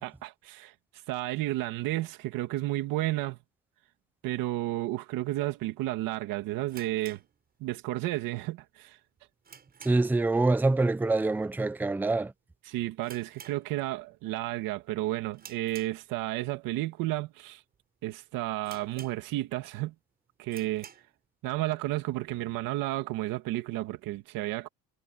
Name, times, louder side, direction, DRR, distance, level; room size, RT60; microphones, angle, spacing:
voice 1, 0.0-0.7 1.1-3.4 4.2-7.2 7.6-9.0 12.7-17.6 18.0-19.9 20.4-20.9 21.4-24.7, right 16 dB, 85° right, 2.1 m, -32 dB
sound 1, 6.7-8.0 8.3-8.4 8.9-10.3 10.6-10.9 11.1-11.2 11.9-12.2 12.5-12.6 13.0-14.2 14.5-14.8 15.3-16.5 17.0-17.1 17.7-17.8 18.1-18.2 18.6-19.6 20.0-20.1 20.4-21.2, right 7 dB, 30° right, 6.8 m, -51 dB
voice 2, 9.8-12.3, right 2 dB, 5° right, 0.6 m, -25 dB
cardioid pair, 165°, 32 cm